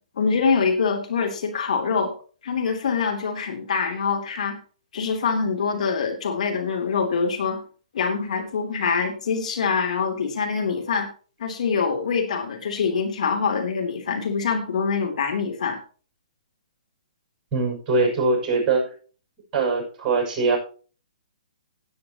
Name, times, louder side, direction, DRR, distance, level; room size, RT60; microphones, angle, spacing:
voice 1, 0.1-2.1 2.4-4.6 4.9-7.6 7.9-11.1 11.4-15.8, left 5 dB, 60° left, 3 dB, 2.9 m, -24 dB
voice 2, 17.5-18.9 19.5-20.6, right 3 dB, 25° right, -1 dB, 6.6 m, -22 dB
17.0 x 9.4 x 3.0 m, 0.38 s
hypercardioid pair, 130°, 4 cm